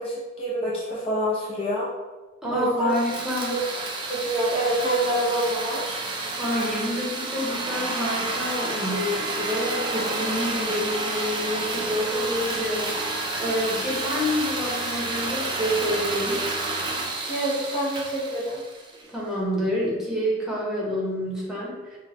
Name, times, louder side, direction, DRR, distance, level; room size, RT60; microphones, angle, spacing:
voice 1, 0.0-1.9 2.5-2.9 3.5-3.6 4.1-5.8 17.3-18.6, right 1 dB, 30° left, -7 dB, 0.8 m, -26 dB
voice 2, 2.4-3.5 6.4-16.4 19.1-22.0, left 1 dB, 5° right, -6 dB, 1.1 m, -28 dB
sound 1, 2.9-19.1, right 2 dB, 25° right, 0.5 m, -30 dB
6.2 x 2.3 x 2.8 m, 1.2 s
head